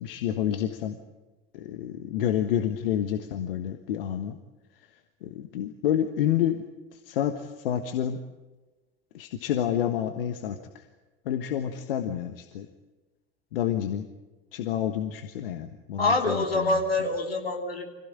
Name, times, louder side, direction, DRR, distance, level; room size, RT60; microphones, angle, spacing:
voice 1, 0.0-0.9 1.5-4.4 5.2-6.6 7.1-8.2 9.1-10.6 11.3-12.7 13.5-14.1 14.5-16.7, left 10 dB, 70° left, 8 dB, 1.4 m, -29 dB
voice 2, 16.0-17.9, left 2 dB, 85° left, 2 dB, 3.1 m, -25 dB
25.5 x 16.5 x 8.8 m, 1.2 s
figure-of-eight pair, 65°, 29 cm